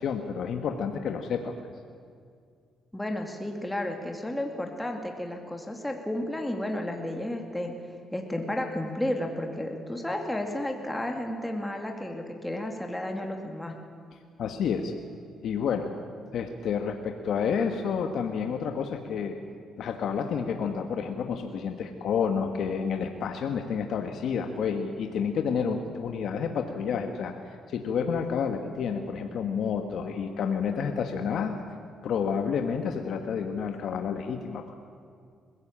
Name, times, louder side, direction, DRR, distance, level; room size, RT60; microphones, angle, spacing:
voice 1, 0.0-1.5 14.4-14.9 15.4-15.9 16.3-19.4 19.8-27.3 27.7-31.6 32.0-34.7, left 6 dB, 70° left, 5 dB, 1.4 m, -29 dB
voice 2, 2.9-7.7 8.1-13.8, left 1 dB, 10° left, 2 dB, 2.5 m, -32 dB
21.0 x 16.0 x 8.8 m, 2.2 s
cardioid pair, 90°, 0 cm